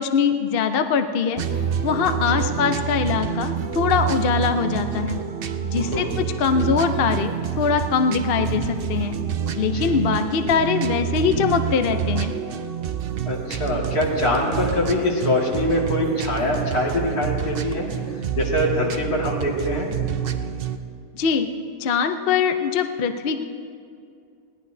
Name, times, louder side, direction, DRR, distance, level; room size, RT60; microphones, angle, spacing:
voice 1, 0.0-1.4 1.8-5.2 5.7-9.1 9.6-12.3 21.1-21.5 21.8-23.4, left 6 dB, 55° left, 7 dB, 0.7 m, -22 dB
sound 1, 1.4-20.8, right 8 dB, 60° right, 0.6 m, -27 dB
voice 2, 5.7-6.1 9.6-10.0 13.3-19.9, left 1 dB, 75° left, -2 dB, 2.6 m, -24 dB
21.0 x 17.0 x 2.7 m, 2.3 s
omnidirectional pair, 1.7 m